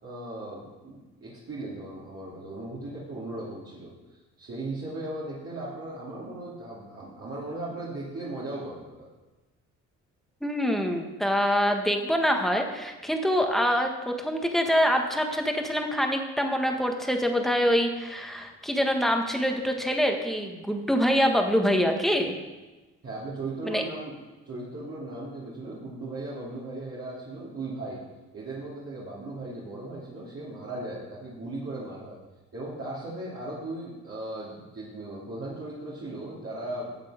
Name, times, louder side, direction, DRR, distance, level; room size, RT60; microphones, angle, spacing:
voice 1, 0.0-9.1 23.0-24.2 24.4-28.0 28.3-32.2 32.5-36.9, right 2 dB, 50° right, -8 dB, 3.1 m, -37 dB
voice 2, 10.4-22.3 23.6-23.8, equal, ahead, 3 dB, 1.6 m, -25 dB
12.0 x 7.4 x 5.1 m, 1.2 s
cardioid pair, 90°, 30 cm